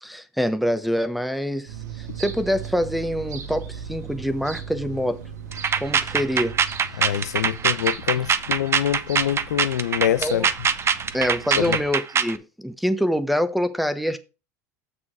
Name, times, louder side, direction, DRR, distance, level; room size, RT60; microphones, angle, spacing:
voice 1, 0.0-5.2 5.8-6.5 10.2-10.5 11.1-14.2, equal, ahead, 1.0 m, -25 dB
sound 1, 1.7-11.9, right 7 dB, 90° right, 1.8 m, -38 dB
sound 2, 5.5-12.4, right 6 dB, 30° right, 0.8 m, -23 dB
voice 2, 7.0-10.5 11.6-11.8, left 10 dB, 85° left, 0.6 m, -25 dB
7.2 x 6.4 x 4.7 m
hypercardioid pair, 85°, 9 cm